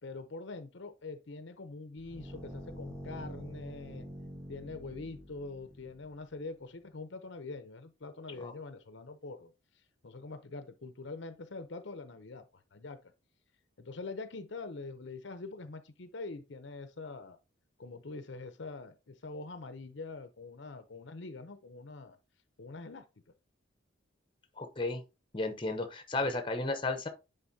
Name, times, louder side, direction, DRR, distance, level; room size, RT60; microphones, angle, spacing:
voice 1, 0.0-4.1 4.5-9.5 10.0-13.0 13.8-17.4 17.8-22.2 22.6-23.1 26.2-26.3, left 3 dB, 60° left, 0.7 m, -44 dB
sound 1, 2.0-6.3, equal, 15° right, 1.3 m, -46 dB
voice 2, 24.6-25.0 25.3-27.1, left 2 dB, 25° left, 0.8 m, -33 dB
9.9 x 4.0 x 2.8 m
head